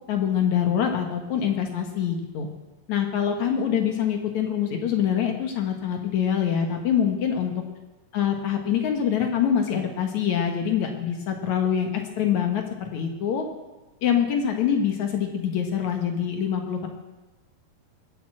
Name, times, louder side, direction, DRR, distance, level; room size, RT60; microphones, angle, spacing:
voice 1, 0.1-2.5 2.9-7.5 8.1-13.5 14.0-16.9, left 8 dB, 60° left, 4 dB, 2.6 m, -25 dB
21.0 x 8.3 x 7.7 m, 1.1 s
omnidirectional pair, 3.9 m